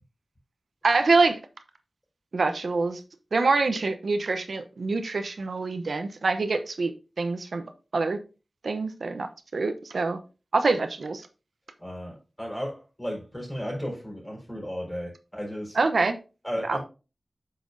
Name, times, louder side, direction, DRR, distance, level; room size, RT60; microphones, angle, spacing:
voice 1, 0.8-1.4 2.3-3.0 3.3-6.9 7.2-7.6 7.9-8.2 8.6-9.3 9.5-10.2 10.5-11.2 15.8-16.2 16.7-16.8, right 3 dB, 80° right, 0.8 m, -25 dB
voice 2, 11.8-15.8 16.4-16.8, equal, 15° left, 4.4 m, -34 dB
8.3 x 6.0 x 2.6 m
wide cardioid pair, 75°, 0 cm